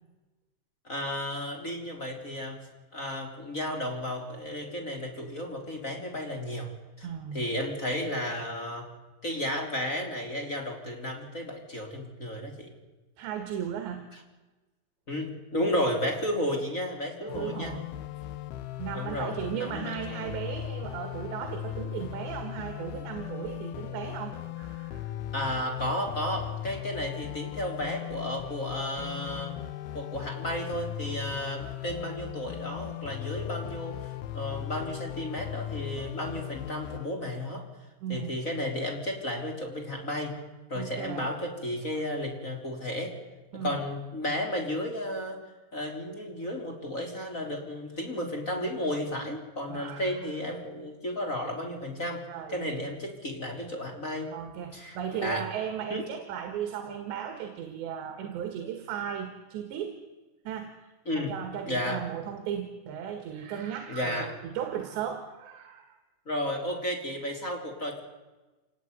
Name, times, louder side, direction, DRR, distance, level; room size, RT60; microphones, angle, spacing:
voice 1, 0.8-6.7 7.0-8.9 9.2-12.7 14.1-14.2 15.1-17.7 18.9-20.3 25.3-29.6 29.9-37.6 38.1-40.4 40.7-43.1 43.5-45.4 45.7-52.2 52.5-54.3 54.7-55.5 55.9-56.0 61.0-61.3 61.6-62.0 63.9-64.3 66.2-68.0, left 1 dB, 20° left, 3 dB, 3.1 m, -33 dB
voice 2, 7.0-7.5 13.2-14.1 17.2-17.9 18.8-25.1 38.0-38.4 40.8-41.3 43.5-43.8 49.7-50.2 52.3-52.8 54.3-60.0 60.5-66.0, right 8 dB, 65° right, 6 dB, 3.8 m, -36 dB
sound 1, 17.3-37.1, left 12 dB, 85° left, 2.1 m, -38 dB
26.5 x 19.0 x 9.6 m, 1.2 s
omnidirectional pair, 6.0 m